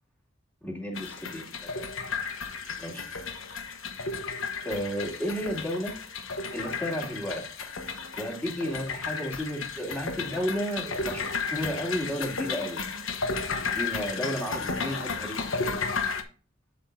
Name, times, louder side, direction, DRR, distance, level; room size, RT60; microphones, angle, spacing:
voice 1, 0.6-1.9 2.8-3.1 4.6-6.0 6.5-7.4 8.2-12.8 13.6-15.8, equal, 10° left, -2 dB, 2.3 m, -33 dB
sound 1, 0.9-16.2, left 4 dB, 80° left, 1.0 m, -33 dB
8.1 x 7.8 x 2.5 m, 0.38 s
head